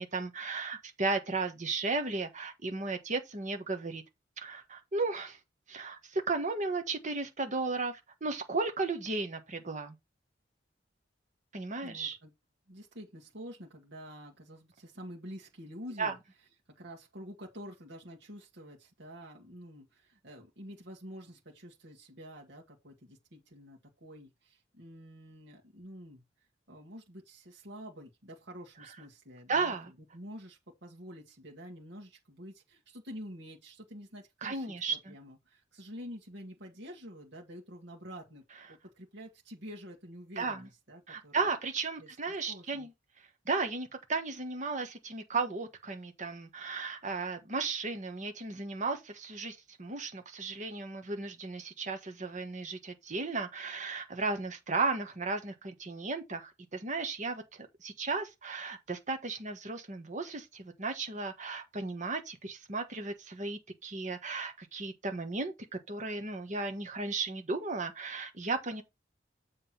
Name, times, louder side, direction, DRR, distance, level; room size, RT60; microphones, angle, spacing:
voice 1, 0.0-4.0 4.4-5.4 5.7-10.0 11.5-12.2 16.0-16.1 29.5-29.9 34.4-35.1 40.4-40.7 41.1-42.9 43.4-68.8, right 3 dB, 40° right, 1.4 m, -35 dB
voice 2, 11.8-12.3 12.7-16.2 16.8-26.2 26.7-29.8 30.1-38.4 38.7-41.5 42.0-42.1 42.5-42.9, equal, 65° right, 1.9 m, -48 dB
7.6 x 3.6 x 5.9 m
head